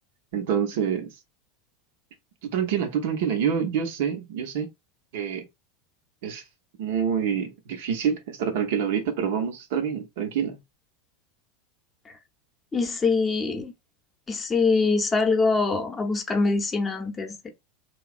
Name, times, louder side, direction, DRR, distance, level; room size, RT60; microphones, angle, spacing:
voice 1, 0.3-1.2 2.4-4.7 5.1-5.5 6.2-6.4 6.8-10.6, right 7 dB, 55° right, 0.6 m, -27 dB
voice 2, 12.7-13.7 14.3-17.5, left 4 dB, 20° left, 0.6 m, -24 dB
3.0 x 2.3 x 2.4 m
figure-of-eight pair, 80°, 0 cm